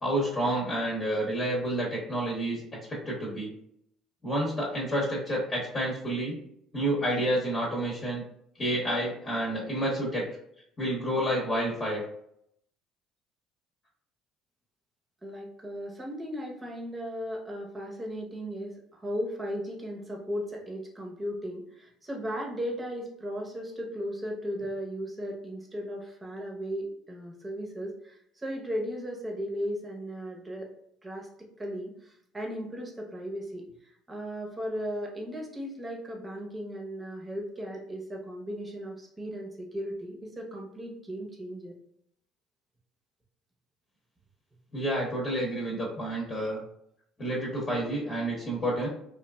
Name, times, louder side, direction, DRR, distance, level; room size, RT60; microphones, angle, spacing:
voice 1, 0.0-2.6 2.9-3.5 4.2-6.4 6.7-8.2 8.6-10.2 10.8-12.0 44.7-46.6 47.2-48.9, right 1 dB, 35° left, -4 dB, 1.0 m, -29 dB
voice 2, 15.2-30.7 31.0-31.3 31.6-33.6 34.1-41.7, equal, 20° right, 0 dB, 0.9 m, -36 dB
3.0 x 2.3 x 2.3 m, 0.72 s
supercardioid pair, 80°, 0 cm